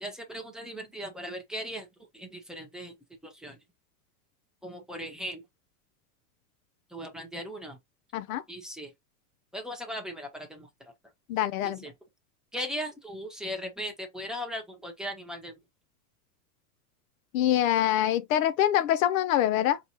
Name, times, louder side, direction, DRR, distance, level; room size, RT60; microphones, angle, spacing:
voice 1, 0.0-1.9 2.1-2.9 3.2-3.6 4.6-5.4 6.9-7.8 8.5-8.9 9.5-10.9 11.8-11.9 12.5-15.5, equal, ahead, 0.9 m, -38 dB
voice 2, 11.3-11.8 17.3-19.8, left 12 dB, 60° left, 0.5 m, -25 dB
4.5 x 3.1 x 2.8 m
supercardioid pair, 135°, 46 cm